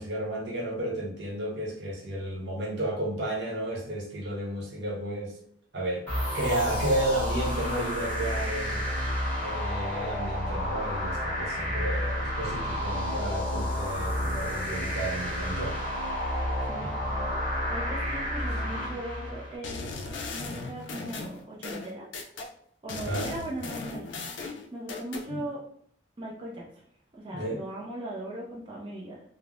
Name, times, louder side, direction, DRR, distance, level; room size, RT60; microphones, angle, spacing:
voice 1, 0.0-5.4 5.7-6.1 6.3-8.8 9.4-15.8 16.8-16.9 23.0-23.3 25.3-25.4 27.3-27.7, right 1 dB, 65° right, -2 dB, 0.8 m, -32 dB
sound 1, 6.1-19.6, equal, 10° left, 1.1 m, -30 dB
voice 2, 16.6-19.8 20.3-22.4 22.8-25.6 26.2-26.6 27.2-29.2, right 1 dB, 30° right, -4 dB, 0.5 m, -39 dB
sound 2, 19.6-22.5 22.9-25.3, left 3 dB, 75° left, 0.4 m, -37 dB
3.2 x 2.0 x 2.4 m, 0.65 s
head